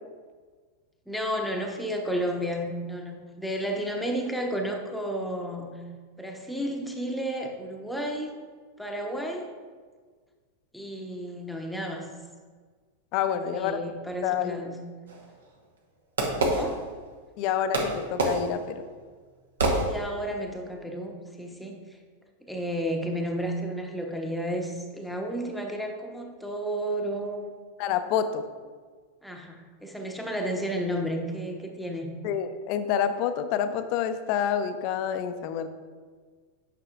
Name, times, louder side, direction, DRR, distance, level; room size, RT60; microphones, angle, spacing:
voice 1, 1.1-5.8 6.2-8.4 8.8-9.5 10.7-12.1 13.3-14.8 16.4-16.8 19.8-21.8 22.4-27.6 29.2-32.1, equal, ahead, 1 dB, 0.9 m, -32 dB
voice 2, 13.1-13.8 14.2-14.6 17.4-18.8 27.8-28.4 32.2-35.7, left 8 dB, 45° left, 10 dB, 0.5 m, -28 dB
Fireworks, 15.1-17.3 17.7-20.4, right 2 dB, 65° right, 1.1 m, -28 dB
9.3 x 5.7 x 2.4 m, 1.5 s
figure-of-eight pair, 90°, 0 cm